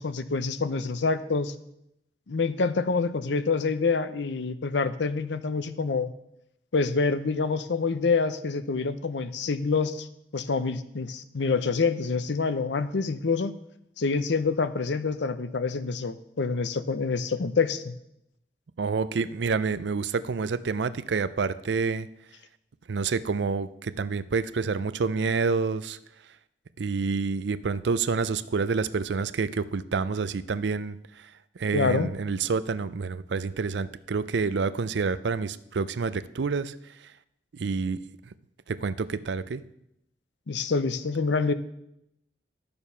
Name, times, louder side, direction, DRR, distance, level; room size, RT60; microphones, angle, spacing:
voice 1, 0.0-1.5 2.3-6.1 6.7-10.1 10.3-13.5 14.0-17.9 31.7-32.1 40.5-41.5, left 4 dB, 80° left, 13 dB, 0.6 m, -26 dB
voice 2, 18.8-22.1 22.9-26.0 26.8-31.0 31.6-36.7 37.6-38.0 38.7-39.6, right 4 dB, 75° right, 15 dB, 0.5 m, -28 dB
11.0 x 6.9 x 5.6 m, 0.80 s
head